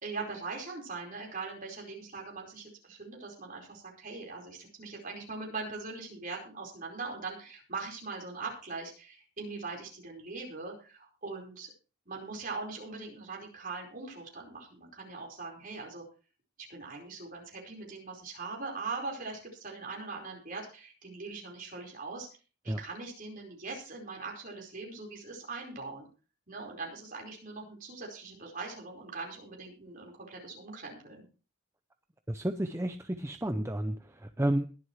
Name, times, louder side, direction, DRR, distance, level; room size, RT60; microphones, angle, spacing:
voice 1, 0.0-11.7 12.1-16.0 16.7-22.3 22.6-26.1 26.5-31.2, right 4 dB, 40° right, 0 dB, 4.8 m, -41 dB
voice 2, 32.3-34.7, right 1 dB, 15° right, 7 dB, 0.6 m, -31 dB
21.5 x 7.9 x 3.2 m, 0.36 s
head